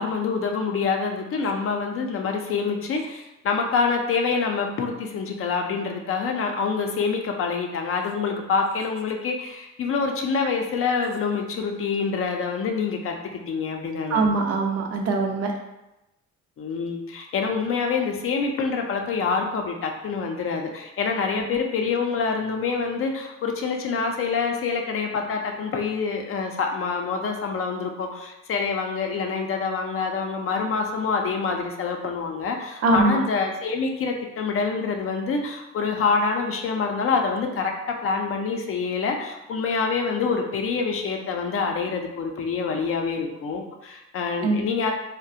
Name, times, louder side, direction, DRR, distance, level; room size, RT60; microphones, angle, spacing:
voice 1, 0.0-14.3 16.6-37.7 38.0-44.9, left 5 dB, 45° left, 2 dB, 0.4 m, -26 dB
voice 2, 14.1-15.5 32.8-33.2 44.4-44.6, right 3 dB, 55° right, 2 dB, 0.5 m, -22 dB
2.3 x 2.1 x 2.7 m, 0.94 s
cardioid pair, 90°, 30 cm